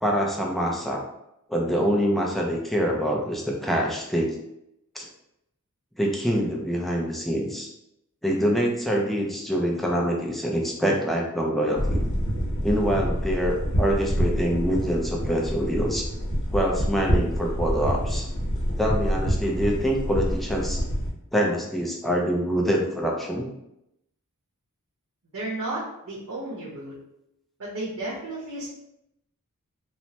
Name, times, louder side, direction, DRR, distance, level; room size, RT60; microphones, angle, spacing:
voice 1, 0.0-1.0 1.5-4.3 5.0-5.1 6.0-7.7 8.2-12.0 12.6-16.1 16.5-18.3 18.8-20.8 21.3-23.5, equal, ahead, -2 dB, 0.4 m, -25 dB
sound 1, 11.7-21.1, equal, 60° left, 1.0 m, -27 dB
voice 2, 25.3-26.9 27.6-28.7, right 2 dB, 80° right, -6 dB, 0.8 m, -33 dB
3.2 x 2.0 x 2.8 m, 0.82 s
head